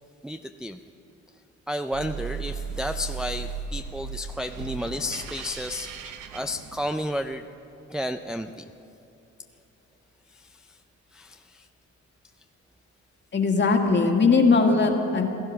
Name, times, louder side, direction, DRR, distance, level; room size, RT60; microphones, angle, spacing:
voice 1, 0.2-0.8 1.7-7.4 7.9-8.6 10.3-10.8 11.1-11.7, equal, ahead, 6 dB, 0.4 m, -32 dB
sound 1, 1.9-7.2, right 6 dB, 80° right, 1.0 m, -36 dB
voice 2, 13.3-15.3, left 4 dB, 35° left, 3 dB, 1.9 m, -20 dB
17.0 x 13.0 x 5.7 m, 2.9 s
cardioid pair, 90°, 30 cm